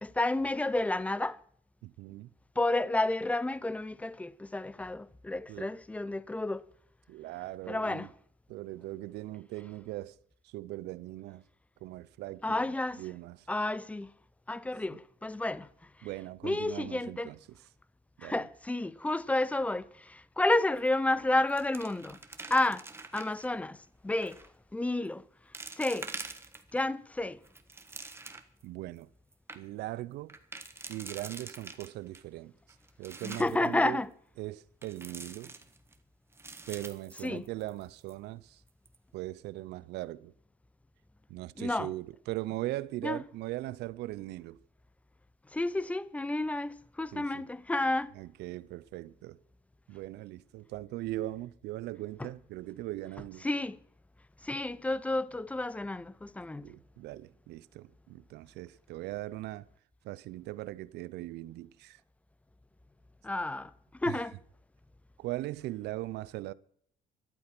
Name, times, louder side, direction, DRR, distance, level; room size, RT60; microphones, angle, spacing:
voice 1, 0.0-1.4 2.6-6.7 7.7-8.1 12.4-13.0 13.5-14.1 14.5-15.7 16.4-17.3 18.2-22.2 22.5-22.8 23.1-23.8 24.0-24.4 24.7-25.2 25.8-26.1 26.7-27.4 33.2-34.1 37.2-37.5 41.6-41.9 43.0-43.2 45.5-48.1 53.4-53.8 54.4-56.7 63.2-63.7 64.0-64.3, left 2 dB, 10° left, 0.6 m, -31 dB
voice 2, 1.8-2.3 5.5-5.7 7.1-8.1 8.5-10.2 10.4-11.4 11.8-12.6 13.0-13.5 14.9-15.0 16.0-17.4 18.2-18.4 28.6-29.1 29.5-30.4 30.9-32.5 33.0-34.0 34.4-35.5 36.7-38.6 39.1-40.3 41.3-44.6 47.1-47.5 48.1-49.4 49.9-53.4 56.6-59.7 60.0-62.0 64.1-64.2 65.2-66.5, right 17 dB, 80° right, 0.7 m, -40 dB
sound 1, 20.8-21.1 21.4-23.5 24.1-24.5 25.0-25.1 25.5-26.9 27.3-28.6 29.0-29.1 29.3-29.6 30.3-32.2 32.7-33.7 34.8-36.0 36.3-37.8 38.1-38.2 38.7-39.0, right 3 dB, 15° right, 1.4 m, -45 dB
13.5 x 12.0 x 6.0 m
cardioid pair, 110°, 17 cm